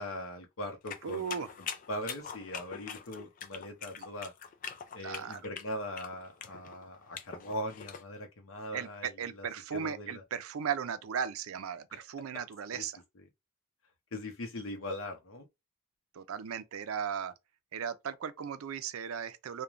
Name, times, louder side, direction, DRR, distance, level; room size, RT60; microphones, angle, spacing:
voice 1, 0.0-1.3 1.6-4.3 4.9-9.5 9.7-10.2 11.9-12.0 12.7-12.8 13.2-13.3 14.1-15.5, left 1 dB, 70° left, 0.7 m, -40 dB
sound 1, 0.9-8.0, left 7 dB, 40° left, 0.3 m, -43 dB
voice 2, 1.0-1.5 4.0-4.1 5.0-5.4 8.7-13.0 16.1-17.3 17.7-19.6, right 7 dB, 85° right, 0.4 m, -37 dB
3.0 x 2.2 x 2.5 m
head